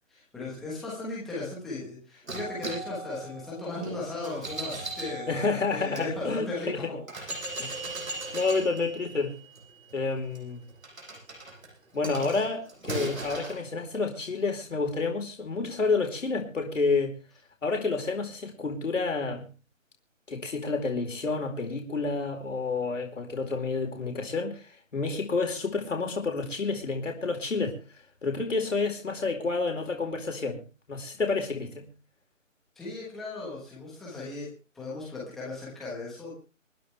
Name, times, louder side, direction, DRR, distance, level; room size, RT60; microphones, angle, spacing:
voice 1, 0.1-7.2 8.3-8.4 32.7-34.5 34.7-36.3, left 2 dB, ahead, 1.3 m, -37 dB
sound 1, 2.3-6.1 6.6-6.7 7.1-13.6, right 2 dB, 90° right, 7.9 m, -39 dB
voice 2, 5.3-6.8 7.6-7.8 8.3-9.3 9.9-10.6 11.9-17.2 17.6-19.5 20.3-27.8 28.2-30.6 30.9-31.9, left 4 dB, 65° left, 4.3 m, -29 dB
27.5 x 10.5 x 3.4 m
hypercardioid pair, 170°, 40 cm